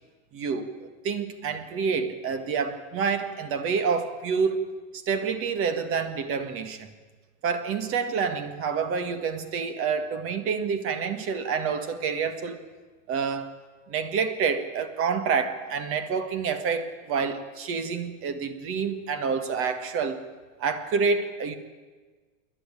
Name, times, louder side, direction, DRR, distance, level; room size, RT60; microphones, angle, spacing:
voice 1, 0.3-4.6 4.9-6.9 7.4-12.6 13.1-13.5 13.9-20.2 20.6-21.5, right 5 dB, 35° right, 1.8 m, -28 dB
28.0 x 11.0 x 9.0 m
supercardioid pair, 150°, 39 cm